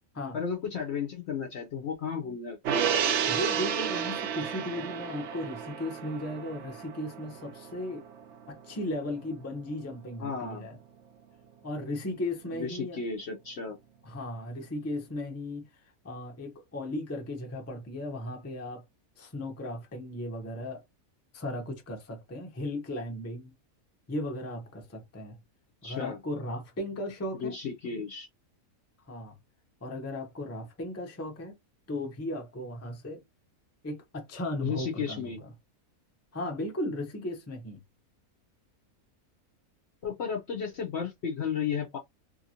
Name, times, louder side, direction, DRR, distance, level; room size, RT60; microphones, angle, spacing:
voice 1, 0.3-3.4 10.2-10.6 12.5-13.8 25.8-26.2 27.3-28.3 34.6-35.4 40.0-42.0, left 6 dB, 60° left, 0.7 m, -34 dB
Gong, 2.6-9.3 9.6-9.7, right 8 dB, 65° right, 0.7 m, -32 dB
voice 2, 3.3-8.0 8.5-10.8 11.6-13.0 14.0-18.8 19.2-20.8 21.3-23.5 24.1-25.4 25.8-27.6 29.1-29.3 29.8-31.6 31.9-33.2 33.8-35.5 36.3-37.8, left 1 dB, 20° left, 0.4 m, -36 dB
2.7 x 2.6 x 2.8 m
omnidirectional pair, 1.6 m